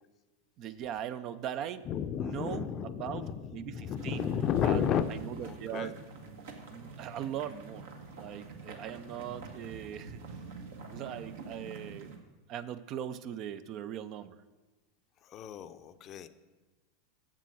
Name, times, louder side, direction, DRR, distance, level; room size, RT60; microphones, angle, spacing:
voice 1, 0.6-1.9 2.2-4.3 4.6-4.8 5.1-5.9 6.7-7.9 8.2-10.2 10.9-12.1 12.5-14.4, right 10 dB, 45° right, 13 dB, 0.5 m, -40 dB
voice 2, 1.8-5.1 5.4-5.9 15.2-16.3, left 8 dB, 40° left, 11 dB, 0.6 m, -32 dB
sound 1, 3.9-12.2, right 4 dB, 75° right, 1.5 m, -47 dB
7.6 x 7.4 x 6.3 m, 1.2 s
hypercardioid pair, 90°, 0 cm